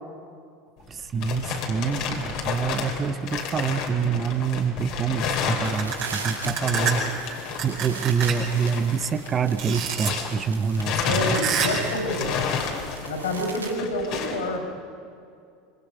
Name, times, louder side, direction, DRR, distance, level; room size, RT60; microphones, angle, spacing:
sound 1, 0.8-10.4 10.7-14.5, left 6 dB, 50° left, 3.2 m, -31 dB
voice 1, 0.9-7.3 7.6-11.4, right 6 dB, 30° right, 11 dB, 1.0 m, -26 dB
sound 2, 5.5-13.8, right 4 dB, 80° right, 2.1 m, -40 dB
sound 3, 5.8-6.9 7.6-8.5 9.6-10.1 11.3-11.9, right 8 dB, 50° right, 5.8 m, -27 dB
voice 2, 11.0-12.5 13.0-14.7, left 1 dB, 70° left, 2 dB, 5.8 m, -28 dB
24.5 x 24.5 x 5.1 m, 2.4 s
figure-of-eight pair, 75°, 0 cm